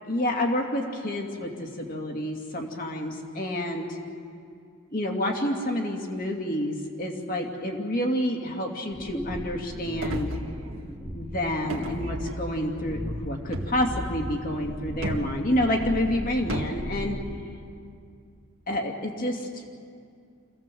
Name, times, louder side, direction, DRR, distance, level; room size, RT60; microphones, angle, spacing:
voice 1, 0.1-4.0 4.9-10.3 11.1-17.2 18.7-19.6, left 1 dB, 40° left, 1 dB, 2.5 m, -28 dB
sound 1, 8.9-17.5, equal, 5° left, 1.8 m, -37 dB
sound 2, 10.0-10.9 11.7-12.7 13.5-14.0 15.0-15.4 16.5-16.8, right 2 dB, 70° right, 1.7 m, -34 dB
27.0 x 16.5 x 7.7 m, 2.4 s
head